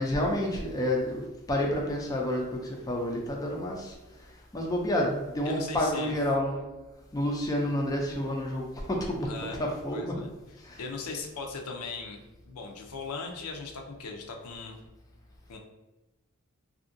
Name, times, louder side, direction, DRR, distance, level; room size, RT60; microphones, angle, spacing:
voice 1, 0.0-4.0 4.5-6.6 7.1-9.3 9.6-10.1 10.6-10.8, left 1 dB, 15° left, -1 dB, 0.4 m, -29 dB
voice 2, 5.4-6.1 9.3-9.6 9.9-10.3 10.8-12.2 12.4-14.8 15.5-15.6, left 4 dB, 90° left, 3 dB, 0.5 m, -38 dB
2.7 x 2.5 x 2.5 m, 1.1 s
head